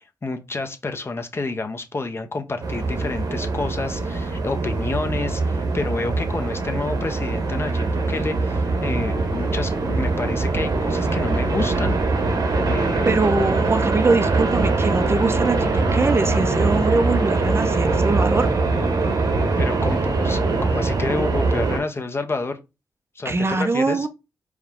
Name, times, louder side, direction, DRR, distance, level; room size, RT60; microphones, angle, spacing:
voice 1, 0.2-12.0 12.7-13.5 19.6-22.6 23.2-24.1, left 3 dB, 35° left, 0.7 m, -29 dB
sound 1, 2.6-21.8, right 3 dB, 60° right, 1.0 m, -22 dB
voice 2, 13.1-18.5 23.2-24.1, right 3 dB, 35° right, 0.5 m, -22 dB
4.7 x 2.2 x 3.5 m
cardioid pair, 75°, 7 cm